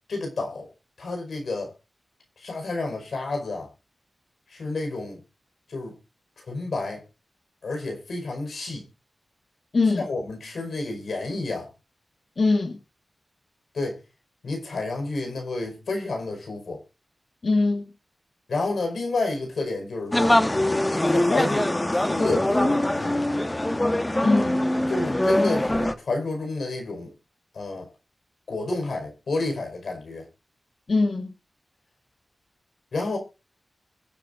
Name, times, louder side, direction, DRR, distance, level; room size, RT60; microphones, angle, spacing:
voice 1, 0.1-0.7 1.0-1.7 2.4-3.7 4.5-5.2 5.7-5.9 6.5-7.0 7.6-8.9 10.0-11.7 13.7-14.0 14.4-16.8 18.5-20.4 20.9-23.2 24.9-27.1 27.5-27.9 28.5-30.2 32.9-33.2, left 2 dB, 80° left, 5.1 m, -30 dB
voice 2, 9.7-10.1 12.4-12.8 17.4-17.8 24.2-24.7 30.9-31.3, left 3 dB, 60° left, 1.8 m, -22 dB
sound 1, 20.1-25.9, left 1 dB, 20° left, 1.3 m, -23 dB
23.5 x 7.8 x 2.6 m
cardioid pair, 45°, 0 cm